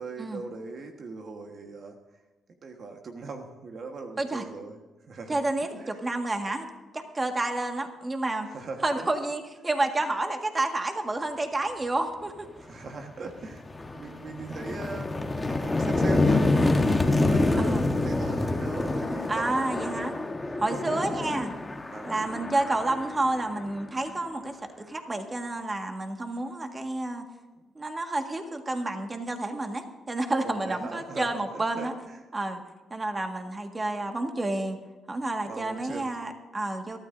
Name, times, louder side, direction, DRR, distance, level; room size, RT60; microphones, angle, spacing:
voice 1, 0.0-2.0 2.6-4.8 5.1-5.4 5.7-6.0 8.5-9.1 12.6-13.6 13.9-17.7 18.0-20.1 20.4-21.5 21.9-22.2 27.6-27.7 30.4-32.2 35.4-36.1, right 4 dB, 50° right, 4 dB, 1.4 m, -40 dB
voice 2, 5.3-6.7 6.9-8.5 8.8-12.5 17.6-17.9 19.3-20.1 20.6-21.5 22.0-27.3 27.8-31.9 32.3-32.6 32.9-34.8 35.1-37.0, right 2 dB, 25° right, 4 dB, 1.7 m, -30 dB
sound 1, 12.7-12.9 13.3-24.1, left 2 dB, 20° left, 1.2 m, -27 dB
23.0 x 13.0 x 2.7 m, 1.2 s
cardioid pair, 90°, 0 cm